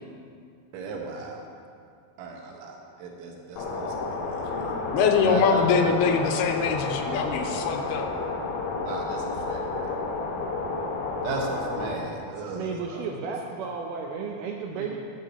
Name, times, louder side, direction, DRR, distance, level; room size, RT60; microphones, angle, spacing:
voice 1, 0.7-1.4 2.2-2.7 3.0-3.9 4.3-4.4 5.2-5.6 8.8-9.9 11.2-13.0, right 4 dB, 65° right, 0 dB, 2.0 m, -35 dB
sound 1, 3.6-12.0, left 3 dB, 75° left, 1.7 m, -31 dB
voice 2, 4.4-8.1, left 6 dB, 90° left, 5 dB, 2.7 m, -24 dB
voice 3, 12.5-15.0, right 5 dB, 85° right, 1 dB, 1.9 m, -33 dB
11.5 x 4.8 x 7.9 m, 2.3 s
omnidirectional pair, 4.5 m